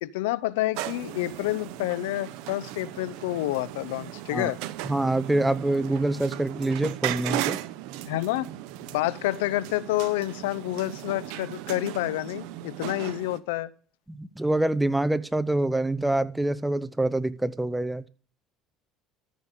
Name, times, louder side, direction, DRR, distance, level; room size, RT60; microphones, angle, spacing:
voice 1, 0.0-4.6 8.0-8.5 8.8-13.7, left 17 dB, 90° left, 0.5 m, -28 dB
sound 1, 0.7-13.4, right 14 dB, 75° right, 0.8 m, -36 dB
voice 2, 4.8-7.6 14.1-18.0, right 2 dB, 5° right, 0.8 m, -26 dB
14.0 x 5.2 x 6.4 m
supercardioid pair, 85°, 0 cm